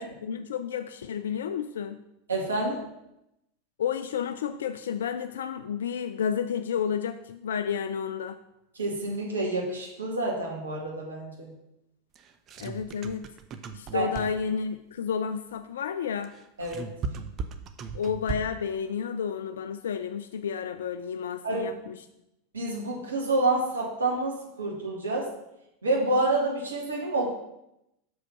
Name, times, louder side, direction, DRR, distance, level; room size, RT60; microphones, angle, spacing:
voice 1, 0.0-2.0 3.8-8.4 12.6-13.3 13.7-16.3 17.9-22.0, left 7 dB, 65° left, 10 dB, 0.3 m, -31 dB
voice 2, 2.3-2.8 8.8-11.5 13.9-14.1 16.6-16.9 21.4-21.7 22.5-25.3 25.8-27.3, right 2 dB, 75° right, -2 dB, 1.9 m, -28 dB
sound 1, 12.1-14.6 16.2-18.7, right 5 dB, 35° right, 0.6 m, -37 dB
6.2 x 5.0 x 5.7 m, 0.85 s
figure-of-eight pair, 85°, 0 cm